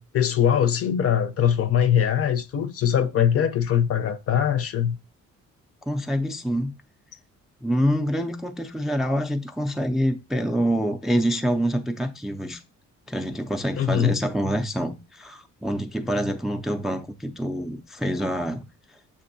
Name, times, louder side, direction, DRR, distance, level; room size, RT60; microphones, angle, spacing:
voice 1, 0.0-5.0 13.8-14.1, left 9 dB, 50° left, 0.5 m, -22 dB
voice 2, 5.9-6.7 7.6-12.6 13.1-18.7, equal, ahead, 0.4 m, -26 dB
7.0 x 2.6 x 2.6 m
cardioid pair, 90°, 30 cm